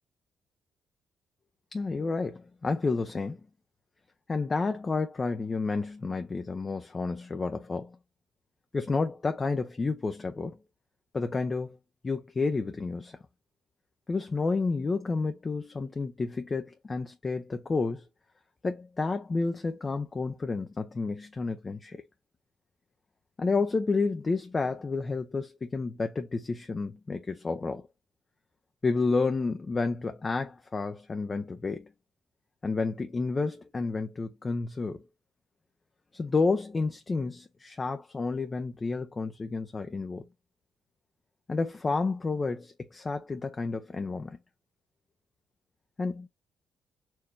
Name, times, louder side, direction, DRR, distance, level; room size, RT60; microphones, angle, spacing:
voice 1, 1.7-3.4 4.3-8.0 8.7-10.6 11.1-11.8 12.0-13.2 14.1-18.0 18.6-22.0 23.4-27.9 28.8-31.9 32.6-35.0 36.1-40.2 41.5-44.4 46.0-46.3, left 3 dB, 30° left, 0.6 m, -30 dB
4.5 x 2.9 x 3.3 m
cardioid pair, 90°, 0 cm